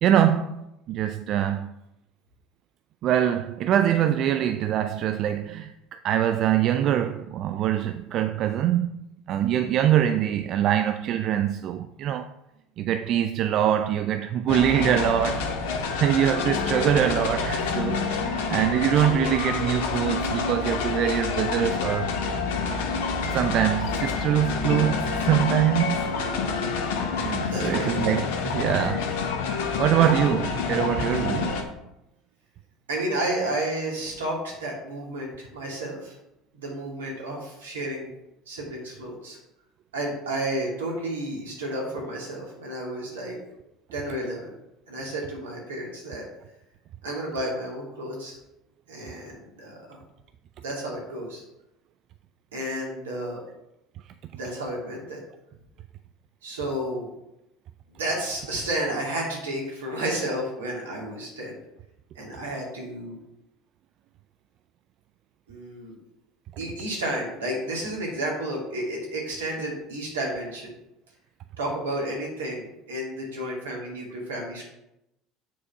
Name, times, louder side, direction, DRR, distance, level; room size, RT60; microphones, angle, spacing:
voice 1, 0.0-1.7 3.0-5.7 6.0-9.0 9.3-12.3 12.8-15.5 15.8-22.1 23.3-26.2 27.1-28.2 28.5-29.1 29.8-31.6, right 10 dB, 55° right, 0.4 m, -24 dB
sound 1, 14.5-31.6, left 4 dB, 70° left, 1.0 m, -27 dB
voice 2, 27.5-27.9 32.9-36.1 36.5-38.1 38.5-39.4 39.9-43.4 43.9-44.5 44.9-46.2 47.0-48.4 48.9-50.0 50.6-51.4 52.5-53.4 54.3-55.2 56.4-57.1 58.0-61.6 62.1-63.2 65.5-65.9 66.6-70.7 71.6-74.6, right 1 dB, 85° right, 2.5 m, -31 dB
7.4 x 4.1 x 5.9 m
hypercardioid pair, 70°, 0 cm